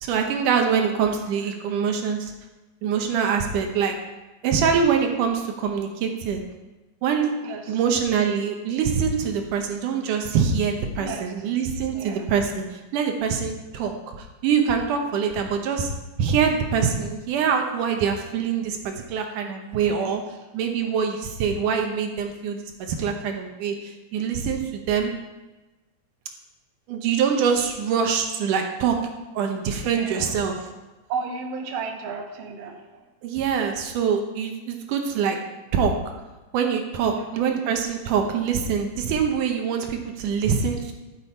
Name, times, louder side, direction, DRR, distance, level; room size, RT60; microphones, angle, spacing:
voice 1, 0.0-2.3 2.8-4.0 4.4-6.4 7.0-7.3 7.7-15.9 16.2-20.2 20.5-25.1 26.9-29.0 29.4-30.6 33.2-35.4 35.7-35.9 36.5-40.9, right 6 dB, 80° right, 4 dB, 2.5 m, -24 dB
voice 2, 7.4-7.8 11.0-11.3 11.9-12.3 19.8-20.2 29.8-30.6 31.1-33.0 37.1-37.3, right 5 dB, 60° right, 2 dB, 2.0 m, -34 dB
12.5 x 7.6 x 4.4 m, 1.1 s
omnidirectional pair, 3.7 m